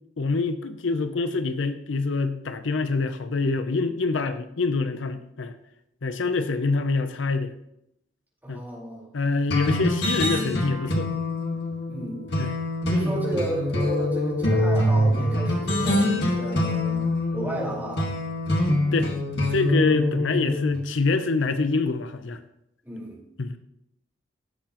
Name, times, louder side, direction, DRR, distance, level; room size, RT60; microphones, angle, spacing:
voice 1, 0.2-5.5 6.0-7.5 8.5-8.6 9.1-11.1 12.4-12.5 18.9-19.1 19.5-22.4 23.4-23.6, left 3 dB, 80° left, 10 dB, 0.6 m, -25 dB
voice 2, 8.4-9.1 11.9-12.3 12.9-18.0 22.8-23.2, right 1 dB, 10° right, -6 dB, 4.3 m, -33 dB
sound 1, 9.5-20.8, left 1 dB, 60° left, 1.7 m, -25 dB
16.5 x 6.8 x 3.0 m, 0.81 s
head